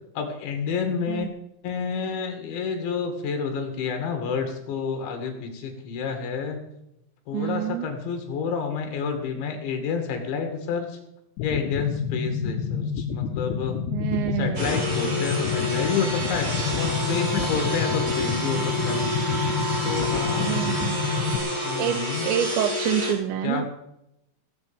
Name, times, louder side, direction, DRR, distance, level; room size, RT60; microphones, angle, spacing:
voice 1, 0.2-1.3 1.6-6.6 7.3-11.0 11.4-13.8 14.4-19.4 19.8-20.6 21.6-22.3 23.4-23.7, left 5 dB, 70° left, 5 dB, 4.5 m, -29 dB
voice 2, 7.3-7.9 13.9-14.9 20.3-21.1 21.7-23.7, right 11 dB, 80° right, 11 dB, 2.8 m, -28 dB
sound 1, 11.4-21.4, left 6 dB, 85° left, 2.1 m, -28 dB
sound 2, 14.6-23.1, left 1 dB, 30° right, 4.1 m, -28 dB
18.5 x 8.3 x 7.1 m, 0.83 s
omnidirectional pair, 5.6 m